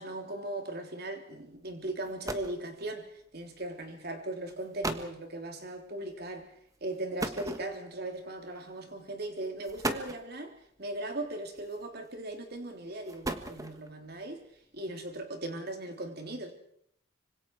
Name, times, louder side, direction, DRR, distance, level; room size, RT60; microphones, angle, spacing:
voice 1, 0.0-6.5 6.8-14.4 14.7-16.5, right 1 dB, 55° right, 4 dB, 3.5 m, -38 dB
sound 1, 1.7-1.8 2.0-2.6 3.6-3.9 4.5-4.6 4.8-5.2 7.2-8.0 9.0-9.1 9.6-10.3 11.6-12.1 12.9-13.9, right 2 dB, 15° right, 1.4 m, -36 dB
25.5 x 25.5 x 4.9 m, 0.69 s
head